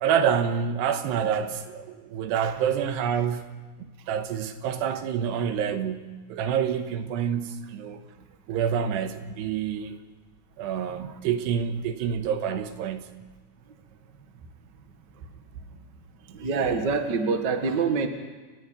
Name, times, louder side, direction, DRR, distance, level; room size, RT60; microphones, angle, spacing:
voice 1, 0.0-3.5 3.8-8.0 8.5-9.9 10.6-13.1, right 8 dB, 85° right, 8 dB, 3.2 m, -27 dB
voice 2, 10.8-11.2 16.3-18.1, right 5 dB, 50° right, 5 dB, 1.3 m, -26 dB
30.0 x 10.5 x 9.6 m, 1.3 s
omnidirectional pair, 4.8 m